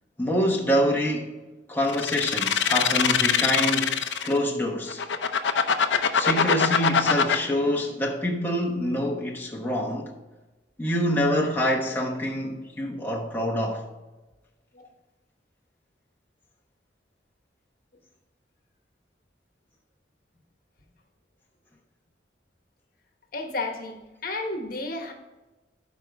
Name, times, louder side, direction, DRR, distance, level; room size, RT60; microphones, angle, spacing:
voice 1, 0.2-1.4 1.7-5.0 6.1-10.1 10.8-13.8, equal, 10° left, 1.0 m, -26 dB
sound 1, 1.9-4.4 4.9-7.4, left 7 dB, 90° left, 0.7 m, -22 dB
voice 2, 23.3-25.1, left 2 dB, 50° left, 1.2 m, -32 dB
13.0 x 5.2 x 3.5 m
head